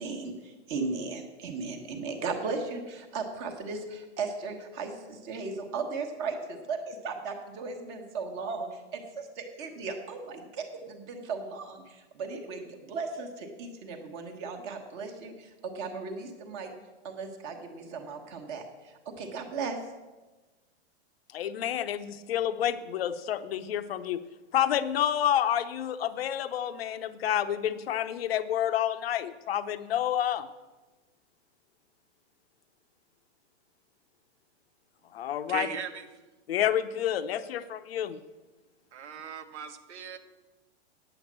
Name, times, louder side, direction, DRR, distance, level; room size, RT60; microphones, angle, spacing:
voice 1, 0.0-16.7 17.0-19.8, right 4 dB, 25° right, 4 dB, 1.2 m, -36 dB
voice 2, 21.3-24.2 24.5-30.5 35.1-35.7 36.5-38.2, left 10 dB, 60° left, 11 dB, 0.8 m, -29 dB
voice 3, 35.5-36.1 38.9-40.2, right 6 dB, 90° right, 8 dB, 1.3 m, -38 dB
9.3 x 8.0 x 7.3 m, 1.2 s
supercardioid pair, 175°, 33 cm